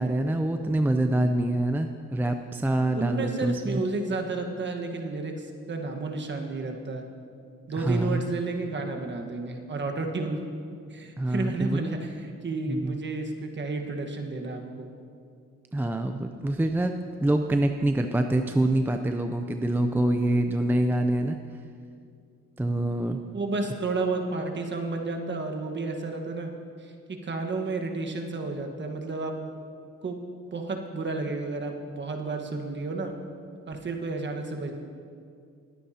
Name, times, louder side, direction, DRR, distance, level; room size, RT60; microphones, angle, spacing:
voice 1, 0.0-3.8 7.7-8.3 11.2-11.8 12.7-13.0 15.7-16.9 17.2-21.4 22.6-23.2, right 1 dB, 5° right, 6 dB, 0.5 m, -25 dB
voice 2, 2.9-7.0 7.7-10.4 10.9-14.9 23.3-26.5 26.8-29.3 30.0-30.2 30.5-33.1 33.7-34.7, right 3 dB, 40° right, 3 dB, 1.4 m, -31 dB
21.0 x 9.2 x 2.9 m, 2.3 s
cardioid pair, 90°, 30 cm